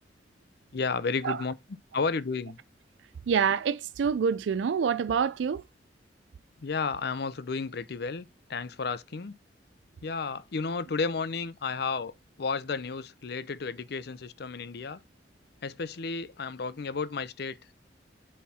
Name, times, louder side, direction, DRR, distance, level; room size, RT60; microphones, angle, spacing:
voice 1, 0.7-1.5 1.9-2.6 6.6-9.4 10.0-12.1 12.4-15.0 15.6-17.6, left 4 dB, 60° left, 0.6 m, -32 dB
voice 2, 3.3-5.6, right 6 dB, 80° right, 0.4 m, -26 dB
7.2 x 4.5 x 4.2 m
head